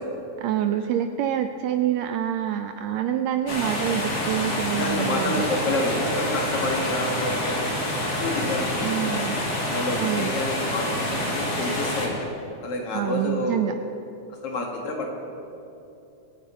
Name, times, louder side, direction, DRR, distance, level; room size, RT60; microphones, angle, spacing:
voice 1, 0.4-5.5 8.8-9.4 10.0-10.3 12.9-13.7, right 10 dB, 80° right, 8 dB, 1.6 m, -26 dB
sound 1, 3.5-12.1, left 1 dB, 35° left, 2.2 m, -27 dB
voice 2, 4.7-8.9 9.6-12.3 12.6-13.6 14.4-15.1, left 2 dB, 55° left, 1 dB, 2.3 m, -29 dB
23.5 x 9.4 x 4.2 m, 2.8 s
omnidirectional pair, 3.5 m